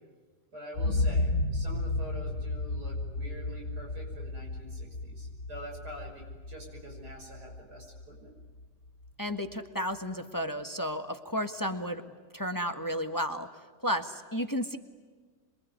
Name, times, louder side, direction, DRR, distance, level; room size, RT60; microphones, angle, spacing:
voice 1, 0.5-8.3, right 1 dB, 70° right, 0 dB, 6.3 m, -46 dB
sound 1, 0.7-8.6 9.1-9.2, left 2 dB, 80° left, 2.5 m, -33 dB
voice 2, 9.2-12.0 12.3-13.5 13.8-14.8, equal, 15° left, 7 dB, 1.4 m, -32 dB
27.0 x 23.5 x 9.4 m, 1.4 s
omnidirectional pair, 1.8 m